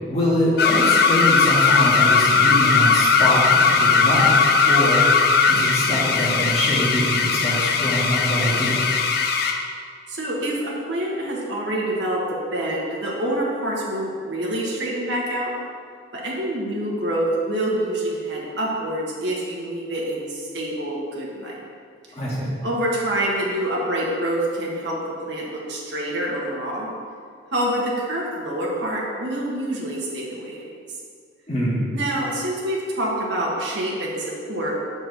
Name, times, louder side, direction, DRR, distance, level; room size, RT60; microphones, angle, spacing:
voice 1, 0.1-5.1 5.5-8.8 22.1-22.5 31.5-31.8, equal, 35° left, -7 dB, 1.9 m, -24 dB
sound 1, 0.6-9.7, left 5 dB, 55° left, 0.5 m, -18 dB
voice 2, 10.1-12.2 12.5-15.5 16.1-21.6 22.6-25.0 25.3-26.9 27.5-30.6 31.9-34.8, right 1 dB, 65° right, -4 dB, 1.4 m, -26 dB
6.0 x 4.4 x 5.6 m, 2.1 s
head